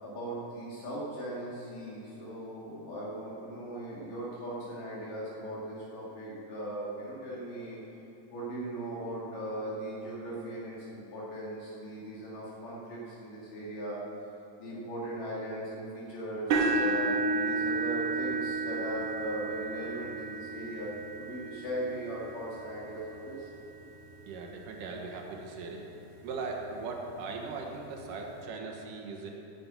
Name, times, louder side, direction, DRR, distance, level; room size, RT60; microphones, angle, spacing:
voice 1, 0.0-7.8 8.3-14.0 14.6-20.9 21.2-23.5, right 1 dB, 85° left, -7 dB, 3.8 m, -38 dB
sound 1, 16.5-24.5 25.2-25.4 25.8-25.9 27.3-27.4, right 3 dB, 55° right, 2.0 m, -33 dB
voice 2, 24.3-25.8 26.2-29.3, right 4 dB, 80° right, 1 dB, 3.0 m, -39 dB
9.7 x 9.4 x 8.7 m, 2.9 s
omnidirectional pair, 3.7 m